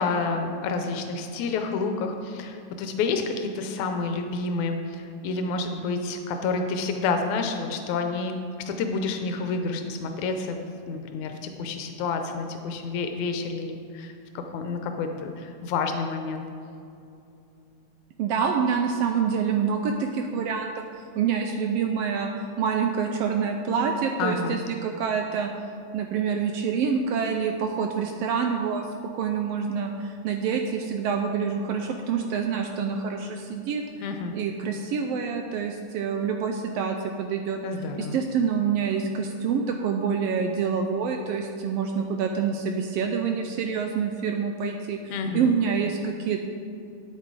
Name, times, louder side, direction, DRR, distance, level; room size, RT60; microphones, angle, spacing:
voice 1, 0.0-8.3 8.7-10.6 10.8-16.4 24.2-24.6 34.0-34.3 37.6-38.2 45.1-45.5, left 4 dB, 85° left, 5 dB, 2.1 m, -29 dB
voice 2, 18.2-20.8 21.2-22.3 22.6-25.5 25.9-28.9 29.1-33.8 34.3-37.6 38.1-46.4, right 6 dB, 85° right, 4 dB, 1.4 m, -26 dB
9.5 x 8.5 x 4.7 m, 2.6 s
omnidirectional pair, 3.3 m